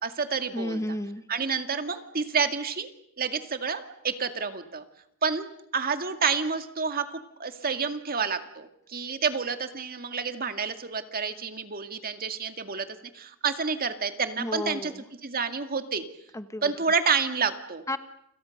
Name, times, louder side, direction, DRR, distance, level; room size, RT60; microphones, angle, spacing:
voice 1, 0.0-0.8 1.3-2.9 3.2-4.8 5.2-5.4 5.7-12.9 13.1-14.9 15.2-16.0 16.6-17.8, right 5 dB, 45° right, 8 dB, 2.1 m, -29 dB
voice 2, 0.5-1.2 14.4-15.0 16.3-16.7 17.9-18.0, left 1 dB, 15° left, 10 dB, 1.2 m, -32 dB
30.0 x 26.5 x 6.6 m, 0.73 s
head